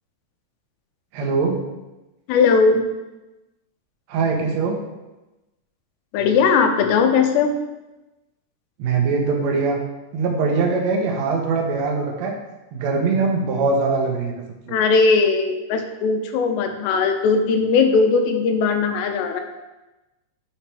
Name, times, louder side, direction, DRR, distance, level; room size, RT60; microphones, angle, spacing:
voice 1, 1.1-1.6 4.1-4.8 8.8-9.8 10.1-12.3 12.7-14.3 14.7-14.8, right 4 dB, 90° right, 0 dB, 1.5 m, -22 dB
voice 2, 2.3-2.8 6.1-7.5 14.7-19.4, left 5 dB, 90° left, 5 dB, 2.9 m, -18 dB
8.3 x 6.0 x 3.4 m, 1.0 s
omnidirectional pair, 4.8 m